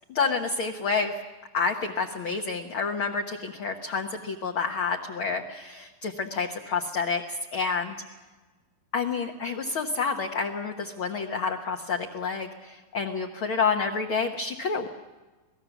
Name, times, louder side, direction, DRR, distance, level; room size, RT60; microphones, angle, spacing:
voice 1, 0.1-1.1 1.5-8.0 8.9-14.9, left 5 dB, 65° left, 2 dB, 1.3 m, -29 dB
27.5 x 18.5 x 7.1 m, 1.3 s
omnidirectional pair, 3.9 m